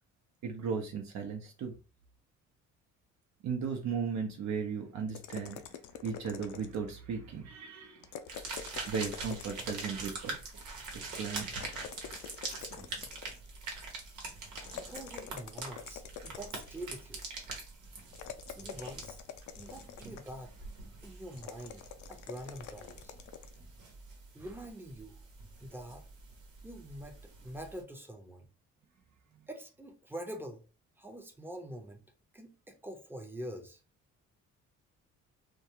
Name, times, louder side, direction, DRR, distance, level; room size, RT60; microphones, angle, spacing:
voice 1, 0.4-1.8 3.4-5.6 6.0-8.1 8.9-10.4 10.9-11.7, right 6 dB, 65° right, 0.6 m, -36 dB
sound 1, 5.1-7.0 8.0-10.1 11.5-13.5 14.5-16.9 18.1-20.4 21.4-23.6, left 9 dB, 75° left, 0.4 m, -46 dB
sound 2, 8.3-27.8, right 3 dB, 85° right, 1.0 m, -44 dB
voice 2, 14.7-17.2 18.5-19.2 19.6-20.5 21.0-21.8 22.1-23.1 24.3-25.2 25.6-26.1 26.6-28.5 29.5-30.7 31.0-32.0 32.3-33.8, right 1 dB, 5° right, 0.6 m, -45 dB
2.3 x 2.2 x 2.8 m
cardioid pair, 90°, 30 cm